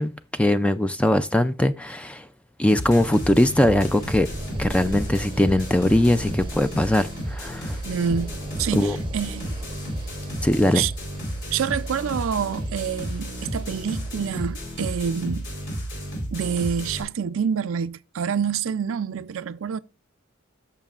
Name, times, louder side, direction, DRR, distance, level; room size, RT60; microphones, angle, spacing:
voice 1, 0.0-2.3 2.6-4.3 4.6-7.8 8.7-9.0 10.4-10.8, left 1 dB, 5° left, 0.3 m, -21 dB
sound 1, 2.7-17.0, equal, 60° left, 3.8 m, -32 dB
sound 2, 3.2-14.9, right 1 dB, 25° right, 0.7 m, -41 dB
voice 2, 7.8-9.6 10.7-10.9 11.5-15.5 16.3-19.8, right 7 dB, 75° right, 0.4 m, -27 dB
14.0 x 6.7 x 2.4 m
head